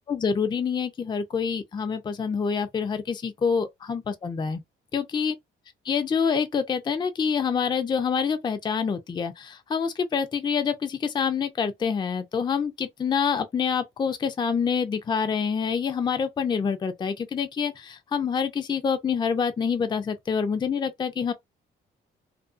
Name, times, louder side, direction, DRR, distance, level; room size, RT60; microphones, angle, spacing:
voice 1, 0.1-4.6 4.9-5.4 5.9-21.3, left 6 dB, 25° left, 0.4 m, -26 dB
2.5 x 2.3 x 2.3 m
cardioid pair, 90°, 20 cm